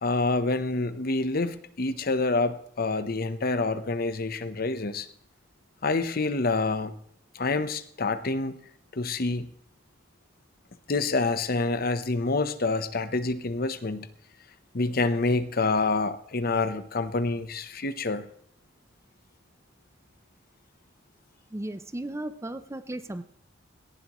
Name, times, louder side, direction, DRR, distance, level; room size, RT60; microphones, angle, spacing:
voice 1, 0.0-5.1 5.8-6.9 7.3-8.6 8.9-9.5 10.9-14.1 14.7-18.3, left 3 dB, 50° left, 12 dB, 0.9 m, -27 dB
voice 2, 21.5-23.2, right 1 dB, 15° right, 12 dB, 0.5 m, -35 dB
18.0 x 15.0 x 3.1 m, 0.67 s
head